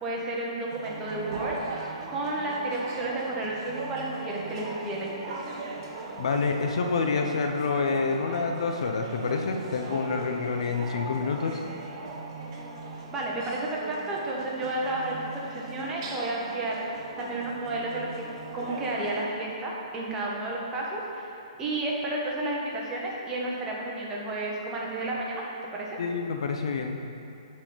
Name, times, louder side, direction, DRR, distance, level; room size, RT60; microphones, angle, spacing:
voice 1, 0.0-5.6 13.1-16.8 17.2-18.2 18.5-25.4 25.7-26.0, right 2 dB, 20° right, -4 dB, 1.3 m, -32 dB
sound 1, 0.7-19.3, right 3 dB, 45° right, 1.0 m, -39 dB
voice 2, 6.2-11.6 26.0-27.1, left 4 dB, 70° left, 4 dB, 0.7 m, -28 dB
10.5 x 4.3 x 4.0 m, 2.7 s
hypercardioid pair, 140°, 3 cm